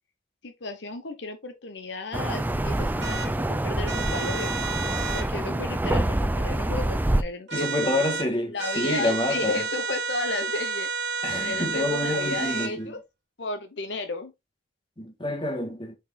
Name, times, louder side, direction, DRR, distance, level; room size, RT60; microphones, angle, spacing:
voice 1, 0.4-3.2 3.5-4.5 5.1-7.9 8.5-10.9 11.4-13.0 13.4-14.3, left 3 dB, 70° left, 0.9 m, -34 dB
sound 1, 2.1-7.2, right 1 dB, 10° right, 0.4 m, -26 dB
sound 2, 3.0-3.3 3.9-5.3 7.5-8.3 8.6-12.7, right 5 dB, 75° right, 1.4 m, -31 dB
voice 2, 7.5-9.6 11.2-12.9 15.0-15.9, left 2 dB, 25° left, 1.8 m, -28 dB
6.1 x 4.5 x 3.7 m
head